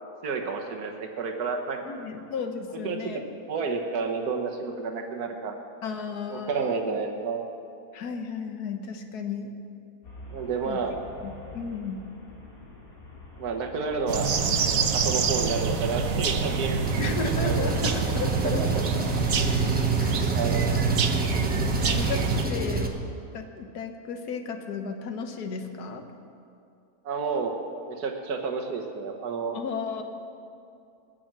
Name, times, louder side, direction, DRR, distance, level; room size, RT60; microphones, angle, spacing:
voice 1, 0.2-1.8 2.8-3.2 3.5-5.6 6.3-7.4 10.3-11.0 13.4-14.3 14.6-17.1 17.4-17.6 18.4-18.8 19.4-19.5 20.3-20.6 27.1-27.5 27.9-29.6, right 4 dB, 85° right, 3 dB, 1.7 m, -30 dB
voice 2, 1.8-3.2 5.8-7.0 7.9-9.5 10.6-10.8 11.2-12.0 17.0-18.8 19.1-19.2 20.0-20.2 21.8-22.9 23.3-26.1 29.5-30.0, left 5 dB, 90° left, 6 dB, 1.6 m, -34 dB
Traffic noise roadway noise, 10.0-18.1, left 1 dB, 65° left, 2.9 m, -46 dB
sound 1, 14.1-22.5, right 5 dB, 65° right, 1.3 m, -26 dB
Engine, 16.9-22.9, right 3 dB, 10° right, 0.7 m, -28 dB
20.0 x 6.7 x 7.5 m, 2.5 s
omnidirectional pair, 1.6 m